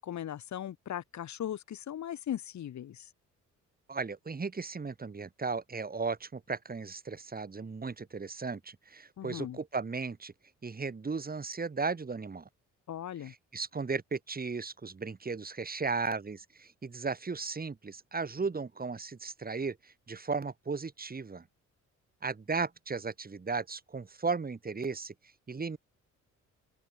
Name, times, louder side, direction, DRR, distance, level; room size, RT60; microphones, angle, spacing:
voice 1, 0.0-3.1 9.2-9.6 12.9-13.3, left 10 dB, 65° left, 5.9 m, -38 dB
voice 2, 3.9-10.3 10.6-12.5 13.2-21.4 22.2-25.1 25.5-25.8, right 4 dB, 30° right, 4.8 m, -36 dB
cardioid pair, 90°, 30 cm